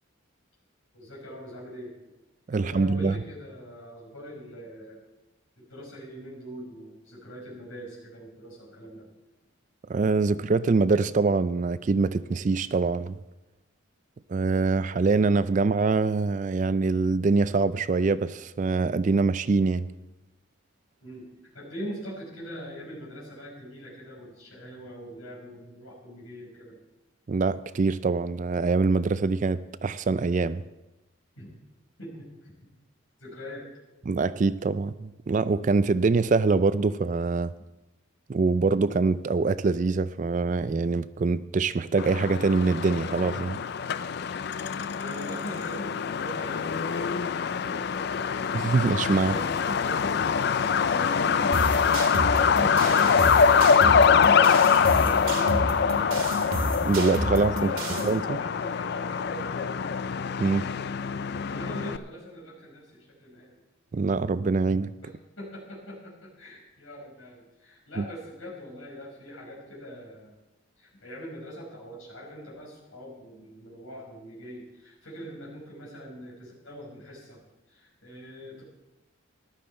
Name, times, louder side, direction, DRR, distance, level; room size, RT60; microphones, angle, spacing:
voice 1, 0.9-1.9 2.5-5.0 5.6-9.1 21.0-21.3 21.5-26.8 31.4-31.5 32.0-32.5 33.2-33.7 44.0-44.1 44.7-48.0 49.3-56.2 57.6-59.9 60.6-60.7 61.2-63.6 65.0-65.1 65.4-70.3 70.8-77.4 77.7-78.6, equal, 70° left, -4 dB, 5.4 m, -42 dB
voice 2, 2.5-3.2 9.9-13.1 14.3-19.9 27.3-30.6 34.1-37.5 38.3-43.6 48.5-49.3 56.8-57.7 58.0-58.4 60.4-60.7 63.9-64.9 68.0-68.1, right 4 dB, 35° right, 15 dB, 0.3 m, -24 dB
Truck, 42.0-62.0, left 6 dB, 50° left, 0.3 m, -24 dB
sound 1, 51.5-58.1, right 1 dB, 75° right, 2.0 m, -31 dB
14.5 x 12.0 x 4.3 m, 1.0 s
head